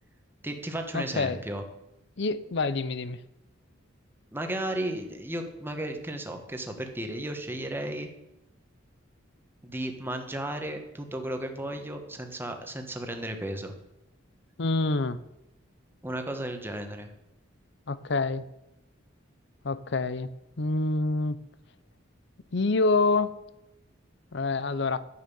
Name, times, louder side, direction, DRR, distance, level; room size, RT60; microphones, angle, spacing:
voice 1, 0.4-1.6 4.3-8.1 9.6-13.7 16.0-17.1, right 1 dB, 10° right, 5 dB, 1.5 m, -34 dB
voice 2, 0.9-1.4 2.2-3.2 14.6-15.2 17.9-18.4 19.6-20.3 20.6-21.4 22.5-23.3 24.3-25.0, left 3 dB, 60° left, 16 dB, 0.7 m, -26 dB
11.0 x 9.3 x 7.1 m, 0.89 s
head